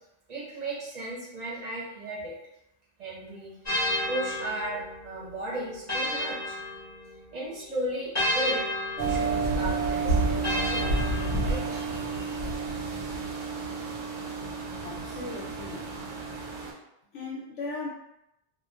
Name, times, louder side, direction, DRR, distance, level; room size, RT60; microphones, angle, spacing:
voice 1, 0.3-2.4 3.0-3.5 4.1-6.6 7.3-8.6 9.1-12.5, right 1 dB, 45° right, -4 dB, 0.7 m, -36 dB
sound 1, 3.6-7.4 8.1-11.8, left 1 dB, 20° left, 0.5 m, -32 dB
sound 2, 9.0-16.7, right 3 dB, 85° right, 1.0 m, -30 dB
voice 2, 14.8-15.9 17.1-17.9, left 3 dB, 85° left, -6 dB, 0.9 m, -37 dB
2.5 x 2.2 x 2.3 m, 0.85 s
omnidirectional pair, 1.2 m